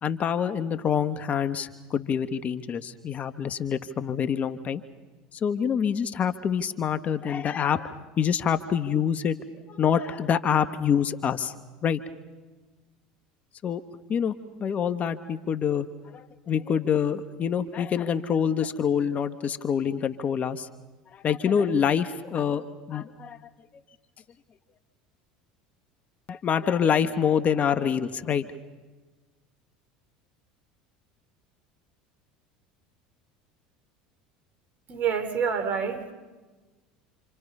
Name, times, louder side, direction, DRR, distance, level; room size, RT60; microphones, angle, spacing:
voice 1, 0.0-4.8 5.3-9.4 9.7-11.5 11.8-12.0 13.6-13.8 14.1-14.3 14.6-20.7 21.1-23.4 26.3-28.5, left 7 dB, 40° left, 10 dB, 1.3 m, -26 dB
voice 2, 34.9-36.1, right 6 dB, 45° right, 9 dB, 3.4 m, -27 dB
28.0 x 27.5 x 5.5 m, 1.3 s
hypercardioid pair, 80°, 4 cm